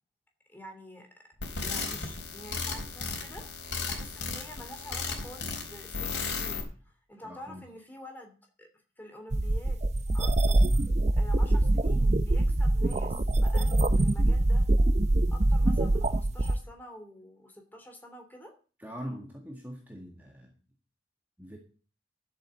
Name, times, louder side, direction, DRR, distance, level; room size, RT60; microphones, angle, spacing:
voice 1, 0.5-1.1 1.5-8.7 9.0-9.8 10.1-10.7 11.1-14.7 15.3-18.5, equal, 10° left, 3 dB, 2.9 m, -48 dB
sound 1, 1.4-6.6, left 4 dB, 75° left, 3.9 m, -35 dB
voice 2, 7.2-7.6 18.8-20.6 21.4-21.6, equal, 10° right, 0 dB, 1.9 m, -42 dB
sound 2, 9.3-16.6, right 1 dB, 40° right, 0.6 m, -24 dB
12.0 x 8.0 x 7.5 m, 0.38 s
head